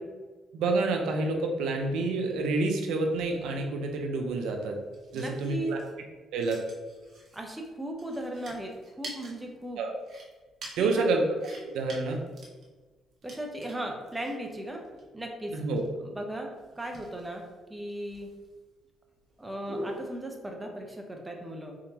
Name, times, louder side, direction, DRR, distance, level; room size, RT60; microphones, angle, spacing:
voice 1, 0.5-4.8 5.1-5.8 6.3-6.6 9.8-9.9 10.8-11.2 11.7-12.2 15.5-15.8, right 3 dB, 85° right, 3 dB, 0.5 m, -28 dB
sound 1, 3.2-20.2, right 1 dB, 55° right, 1.2 m, -47 dB
voice 2, 5.1-5.7 7.3-9.8 10.8-11.1 13.2-14.8 15.1-15.6 16.0-17.4 17.7-18.3 19.4-21.8, right 1 dB, 10° right, 2 dB, 0.7 m, -37 dB
4.2 x 3.7 x 2.9 m, 1.3 s
cardioid pair, 90°, 0 cm